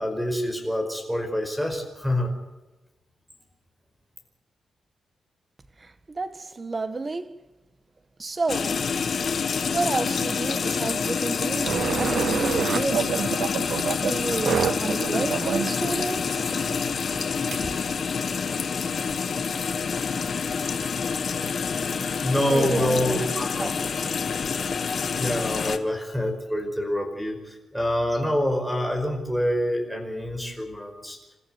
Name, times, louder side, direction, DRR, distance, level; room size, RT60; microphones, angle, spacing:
voice 1, 0.0-2.3 22.2-23.7 25.0-31.2, left 1 dB, 5° right, 5.1 m, -26 dB
voice 2, 5.8-7.3 8.2-8.9 9.7-13.5 14.0-16.7 17.6-17.7 22.5-23.8, right 3 dB, 25° right, 1.5 m, -31 dB
sound 1, 8.5-25.8, left 5 dB, 45° left, 1.7 m, -27 dB
sound 2, 11.6-17.7, right 8 dB, 65° right, 0.6 m, -29 dB
28.0 x 14.0 x 8.2 m
wide cardioid pair, 165°, 0 cm